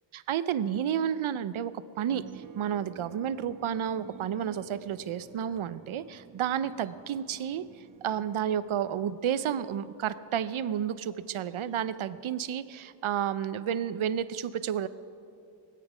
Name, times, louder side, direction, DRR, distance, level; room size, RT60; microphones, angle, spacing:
voice 1, 0.1-1.7 2.0-7.6 8.0-14.9, right 9 dB, 90° right, 14 dB, 0.6 m, -31 dB
sound 1, 2.1-12.1, right 8 dB, 45° right, 0.5 m, -51 dB
21.0 x 8.5 x 4.9 m, 2.5 s
wide cardioid pair, 100°, 47 cm